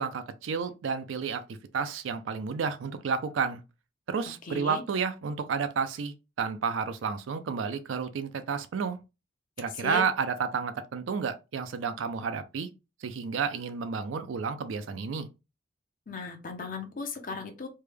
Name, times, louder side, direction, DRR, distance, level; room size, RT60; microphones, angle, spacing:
voice 1, 0.0-3.6 4.1-9.0 9.6-12.7 13.0-15.3, right 6 dB, 80° right, 0.4 m, -31 dB
voice 2, 4.4-4.8 9.8-10.0 16.1-17.7, left 4 dB, 45° left, 0.6 m, -36 dB
3.3 x 2.2 x 3.3 m
head